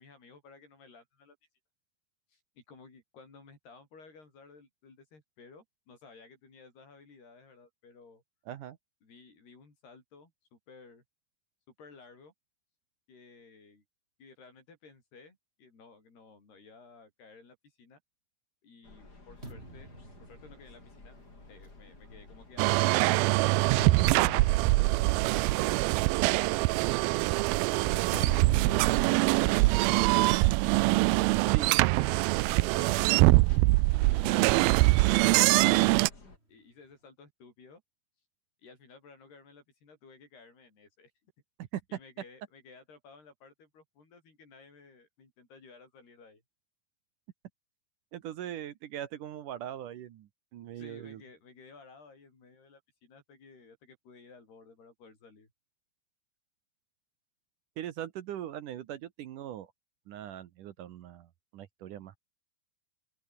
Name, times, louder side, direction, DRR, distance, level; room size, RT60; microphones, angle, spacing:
voice 1, 0.0-1.4 2.3-8.2 9.0-11.0 11.8-12.3 13.1-13.8 14.2-18.0 18.6-19.9 20.3-21.2 21.5-25.2 26.3-27.0 27.3-28.1 28.4-28.8 29.3-30.5 30.9-32.0 32.5-33.2 34.1-34.3 34.6-35.9 36.5-37.8 38.6-41.3 41.9-46.4 50.7-55.5, left 4 dB, 85° left, 9.8 m, -55 dB
voice 2, 8.5-8.8 31.5-31.8 32.8-33.3 34.3-34.5 41.6-42.0 48.1-51.2 57.8-59.7 60.1-62.2, right 11 dB, 65° right, 2.4 m, -40 dB
sound 1, 18.8-36.4, left 3 dB, 25° left, 5.3 m, -53 dB
sound 2, 19.4-23.0 23.5-31.0 31.2-31.4 31.8-33.4 34.2-36.0, right 1 dB, 15° right, 6.6 m, -45 dB
sound 3, 22.6-36.1, right 23 dB, 80° right, 2.2 m, -24 dB
open air
omnidirectional pair, 4.5 m